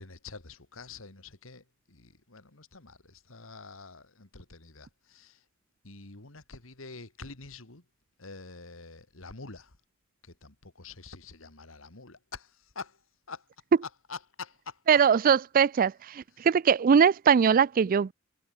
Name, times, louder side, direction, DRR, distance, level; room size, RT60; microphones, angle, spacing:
voice 1, 0.0-5.4 5.8-7.8 8.2-9.7 10.2-13.0 13.3-13.5 13.8-15.0 16.3-16.4, left 4 dB, 85° left, 2.5 m, -46 dB
voice 2, 14.9-18.1, right 7 dB, 45° right, 0.4 m, -21 dB
head